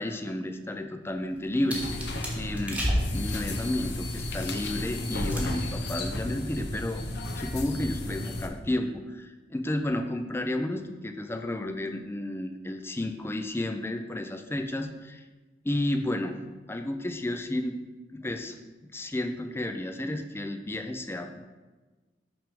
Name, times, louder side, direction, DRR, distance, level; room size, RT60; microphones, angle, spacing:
voice 1, 0.0-1.8 2.4-7.0 7.3-15.2 15.6-16.4 16.7-17.8 18.1-18.6 18.9-21.4, left 1 dB, 15° left, 6 dB, 0.4 m, -32 dB
sound 1, 1.1-4.7 5.3-5.7 6.0-6.4 6.6-6.9, equal, 10° right, 1.2 m, -32 dB
sound 2, 1.7-8.5, left 1 dB, 65° left, 0.7 m, -33 dB
5.9 x 3.5 x 5.2 m, 1.3 s
head